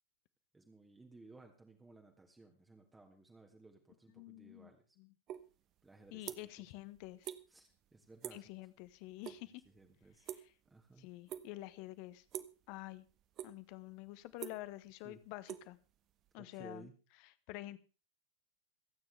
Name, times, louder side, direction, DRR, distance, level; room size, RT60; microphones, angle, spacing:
voice 1, 0.5-5.0 5.8-6.5 7.5-8.5 9.3-10.3 10.6-11.1 15.0-15.2 16.4-16.9, right 2 dB, 10° right, 3 dB, 1.8 m, -58 dB
voice 2, 4.2-4.7 5.0-5.1 6.1-7.3 8.3-9.6 11.0-12.2 12.7-13.1 13.4-15.8 16.3-16.9 17.5-17.8, left 17 dB, 45° left, 15 dB, 1.1 m, -48 dB
sound 1, 5.3-5.5 5.8-6.7 7.0-7.4 7.7-7.9 8.2-8.5 8.9-9.4 9.6-10.8 11.3-11.7 12.3-12.6 13.1-13.8 14.1-16.3, right 11 dB, 35° right, 1.0 m, -46 dB
28.0 x 9.4 x 3.4 m, 0.34 s
figure-of-eight pair, 90°, 0 cm